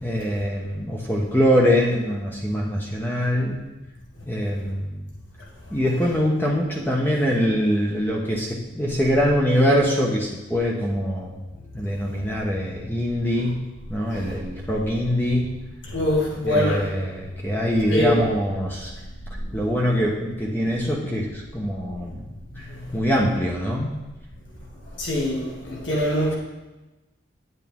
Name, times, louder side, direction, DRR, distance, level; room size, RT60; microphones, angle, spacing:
voice 1, 0.0-3.6 4.3-4.9 5.7-11.3 11.7-15.6 16.4-18.9 19.5-22.2 22.6-22.7 22.9-24.0, equal, 10° left, -2 dB, 1.0 m, -23 dB
voice 2, 15.9-16.9 17.9-18.2 19.4-19.5 22.7-22.8 25.0-26.4, left 1 dB, 75° left, -3 dB, 2.2 m, -24 dB
9.9 x 8.2 x 3.7 m, 1.1 s
head